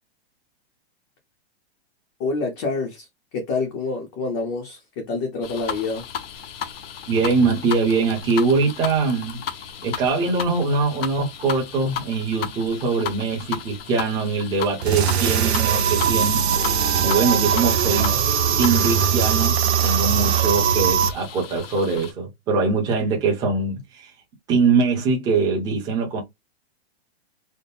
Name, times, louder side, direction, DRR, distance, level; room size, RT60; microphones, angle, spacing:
voice 1, 2.2-3.1 3.3-6.1, left 3 dB, 20° left, 0.7 m, -27 dB
sound 1, 5.4-22.1, left 8 dB, 65° left, 0.8 m, -35 dB
voice 2, 7.1-9.4 9.8-16.4 17.0-18.1 18.6-24.1 24.5-26.2, right 4 dB, 10° right, 0.9 m, -22 dB
sound 2, 14.8-21.1, right 8 dB, 80° right, 0.9 m, -20 dB
4.3 x 2.1 x 3.5 m
supercardioid pair, 175°, 32 cm